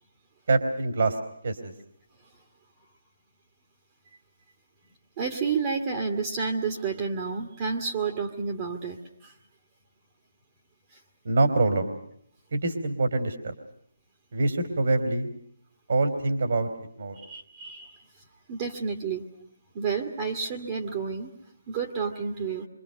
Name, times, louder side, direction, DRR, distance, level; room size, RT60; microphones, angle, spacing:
voice 1, 0.5-1.2 1.4-1.7 11.3-12.0 12.5-13.5 14.3-15.3 15.9-16.7 17.0-17.2, right 2 dB, 55° right, 7 dB, 3.5 m, -25 dB
voice 2, 5.2-9.0 9.2-9.3 10.9-11.0 17.2-18.0 18.5-19.3 19.7-21.3 21.7-22.7, right 5 dB, 20° right, 3 dB, 1.9 m, -30 dB
26.5 x 26.0 x 6.5 m, 0.67 s
hypercardioid pair, 175°, 0 cm